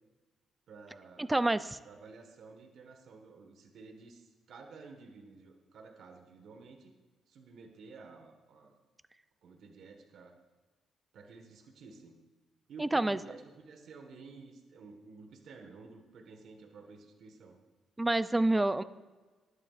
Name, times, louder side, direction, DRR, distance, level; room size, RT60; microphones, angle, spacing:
voice 1, 0.7-1.3 1.8-6.9 7.3-8.8 9.4-10.3 11.1-12.1 12.7-17.6, right 4 dB, 70° right, 4 dB, 1.6 m, -52 dB
voice 2, 1.2-1.8 12.8-13.2 18.0-18.8, right 2 dB, 15° right, 13 dB, 0.5 m, -28 dB
21.0 x 11.0 x 2.5 m, 1.3 s
cardioid pair, 90°, 0 cm